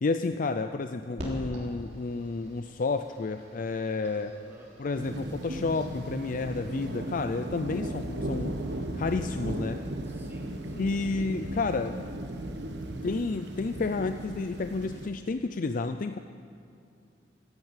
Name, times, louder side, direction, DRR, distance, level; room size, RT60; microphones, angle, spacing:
voice 1, 0.0-4.3 4.8-8.6 8.9-9.8 10.8-12.0 13.0-16.2, left 3 dB, 50° left, 8 dB, 0.5 m, -31 dB
sound 1, 1.2-6.9, equal, 45° right, 3.4 m, -45 dB
voice 2, 4.3-4.8 10.0-10.9, equal, 15° right, -2 dB, 2.8 m, -53 dB
sound 2, 5.0-15.1, right 1 dB, 75° right, 1.3 m, -36 dB
16.5 x 10.5 x 8.2 m, 2.5 s
head